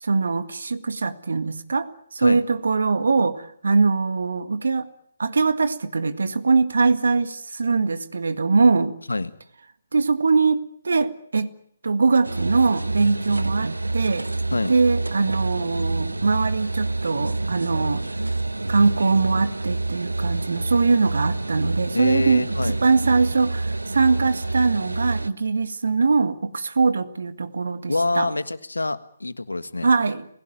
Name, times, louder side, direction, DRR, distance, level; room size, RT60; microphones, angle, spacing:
voice 1, 0.0-4.9 5.2-8.9 9.9-11.5 11.8-14.3 14.7-18.0 18.7-28.3 29.8-30.3, right 4 dB, 60° right, 12 dB, 1.8 m, -22 dB
sound 1, 12.2-25.3, right 2 dB, 80° right, 1.0 m, -27 dB
voice 2, 21.9-22.8 27.9-29.9, left 2 dB, 75° left, 14 dB, 1.6 m, -25 dB
29.5 x 17.0 x 9.2 m, 0.68 s
figure-of-eight pair, 145°, 0 cm